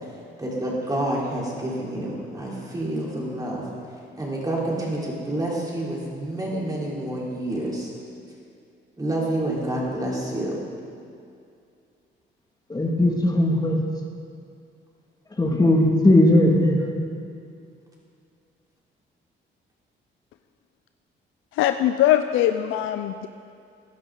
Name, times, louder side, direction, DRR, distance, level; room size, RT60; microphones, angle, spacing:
voice 1, 0.1-7.9 9.0-10.6, right 1 dB, 20° right, -5 dB, 3.6 m, -28 dB
voice 2, 12.7-13.8 15.4-16.9, left 1 dB, 20° left, 0 dB, 1.8 m, -18 dB
voice 3, 21.6-23.3, left 12 dB, 85° left, 9 dB, 0.4 m, -21 dB
15.5 x 11.0 x 3.8 m, 2.4 s
cardioid pair, 90°, 20 cm